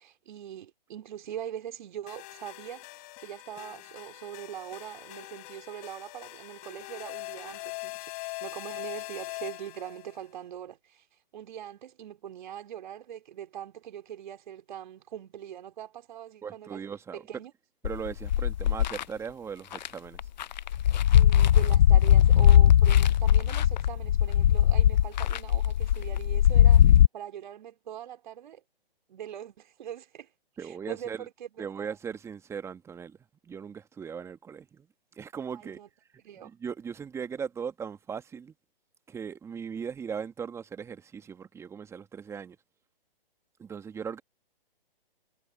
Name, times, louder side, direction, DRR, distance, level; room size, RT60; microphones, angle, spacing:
voice 1, 0.0-11.1 11.3-16.8 17.1-17.5 21.1-26.8 27.1-28.6 29.1-30.3 30.6-32.0 35.5-35.9 36.2-36.5, right 10 dB, 50° right, 3.7 m, -42 dB
sound 1, 2.1-10.2, left 29 dB, 25° left, 3.3 m, -42 dB
voice 2, 16.4-17.3 17.8-20.2 30.6-31.3 31.6-33.2 33.4-34.9 35.1-35.8 36.4-38.5 39.1-42.6 43.6-44.2, right 7 dB, 10° right, 1.6 m, -38 dB
sound 2, 17.8-19.0 19.7-19.9 20.2-27.1, left 10 dB, 50° left, 0.6 m, -20 dB
figure-of-eight pair, 135°, 30 cm